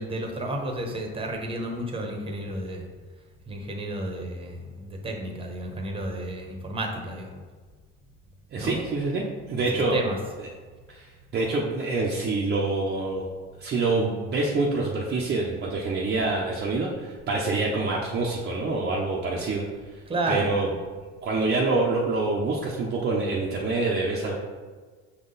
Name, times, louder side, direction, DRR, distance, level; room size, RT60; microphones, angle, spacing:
voice 1, 0.0-2.9 3.5-7.4 8.6-8.8 9.9-10.2 20.1-20.5, right 1 dB, 20° right, 2 dB, 1.1 m, -31 dB
voice 2, 8.5-10.0 10.4-10.5 10.9-13.2 13.6-19.6 19.9-20.7 21.2-24.4, right 3 dB, 35° right, -3 dB, 0.8 m, -26 dB
6.0 x 3.9 x 4.0 m, 1.5 s
supercardioid pair, 105°, 30 cm